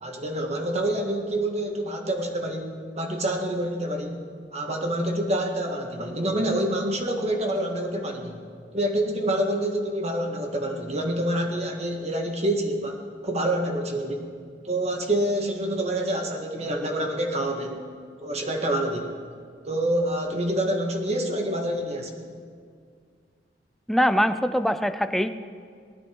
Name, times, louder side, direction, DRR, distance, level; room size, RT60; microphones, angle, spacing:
voice 1, 0.0-4.2 4.5-8.4 8.7-14.3 14.6-17.8 18.2-19.1 19.6-22.2, right 1 dB, 40° right, 2 dB, 1.7 m, -27 dB
voice 2, 23.9-25.4, equal, ahead, 10 dB, 0.5 m, -23 dB
19.0 x 12.0 x 4.7 m, 2.1 s
head